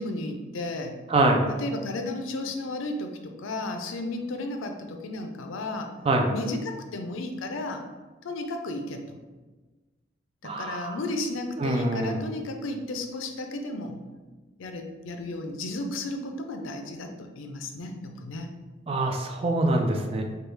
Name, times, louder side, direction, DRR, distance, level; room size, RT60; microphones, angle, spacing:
voice 1, 0.0-1.0 1.5-5.9 6.3-7.8 8.2-9.2 10.4-14.0 14.6-18.5, left 2 dB, 85° left, 5 dB, 0.4 m, -33 dB
voice 2, 1.1-1.4 6.1-6.3 10.4-10.9 11.6-12.2 18.9-20.2, right 2 dB, 30° right, 3 dB, 0.4 m, -24 dB
4.6 x 2.3 x 3.2 m, 1.3 s
head